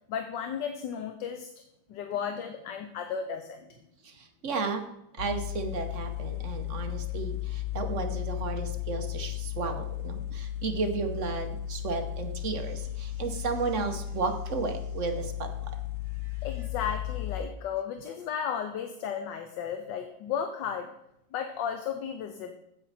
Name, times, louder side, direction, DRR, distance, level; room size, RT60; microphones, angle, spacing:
voice 1, 0.1-1.5 1.9-3.8 16.4-20.9 21.3-22.6, left 7 dB, 75° left, 6 dB, 1.4 m, -34 dB
voice 2, 4.0-4.8 5.2-15.5, right 4 dB, 55° right, 5 dB, 1.0 m, -33 dB
sound 1, 5.2-17.4, left 12 dB, 55° left, 0.9 m, -35 dB
8.8 x 7.8 x 4.2 m, 0.82 s
omnidirectional pair, 2.0 m